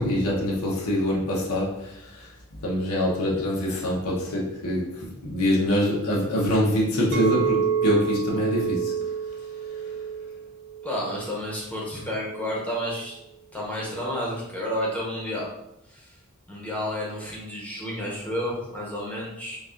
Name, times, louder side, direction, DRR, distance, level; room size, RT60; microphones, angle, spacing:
voice 1, 0.0-2.3 2.6-8.9, left 1 dB, 90° left, -4 dB, 0.9 m, -25 dB
Chink clink, 7.1-11.4 11.9-12.3, right 7 dB, 55° right, 0.4 m, -29 dB
voice 2, 10.8-13.1 13.5-15.5 15.9-16.1 16.5-19.6, equal, 5° left, -5 dB, 0.9 m, -31 dB
5.3 x 2.4 x 2.5 m, 0.84 s
head